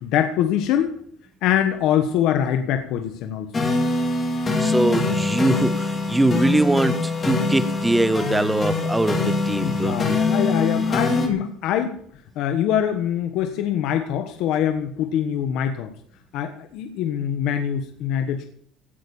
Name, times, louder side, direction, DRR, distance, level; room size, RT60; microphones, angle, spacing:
voice 1, 0.0-0.9 1.4-3.7 9.6-11.9 12.3-15.9 16.3-18.4, left 10 dB, 55° left, 7 dB, 1.3 m, -23 dB
sound 1, 3.5-11.3, left 2 dB, 20° left, 2.4 m, -23 dB
voice 2, 4.6-10.2, right 1 dB, 5° right, 14 dB, 0.8 m, -22 dB
16.5 x 9.0 x 7.1 m, 0.63 s
cardioid pair, 180°, 0 cm